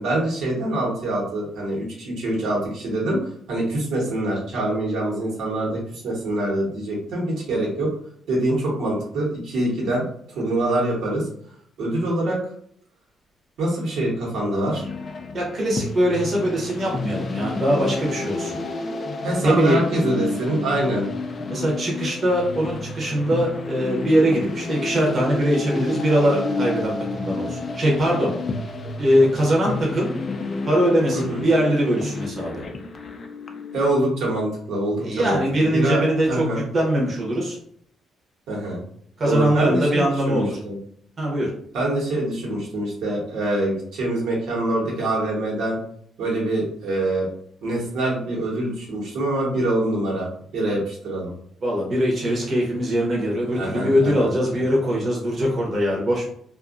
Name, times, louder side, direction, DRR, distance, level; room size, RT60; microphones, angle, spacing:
voice 1, 0.0-7.9 8.3-10.0 10.3-11.3 11.8-12.4 13.6-14.9 19.2-21.1 21.5-21.7 31.1-31.4 33.7-35.4 35.7-36.0 36.3-36.6 38.5-38.8 39.2-40.8 41.7-45.8 46.2-47.3 47.6-51.3 53.5-54.6, right 1 dB, 80° right, -3 dB, 1.1 m, -25 dB
sound 1, 14.7-33.9, left 3 dB, 40° left, 0.3 m, -30 dB
voice 2, 15.3-18.6 19.4-19.8 21.5-28.3 29.0-30.1 30.7-32.6 35.0-37.6 39.2-40.6 41.2-41.5 51.6-56.2, equal, 40° right, -3 dB, 0.8 m, -22 dB
2.5 x 2.3 x 2.4 m, 0.64 s
cardioid pair, 120°, 0 cm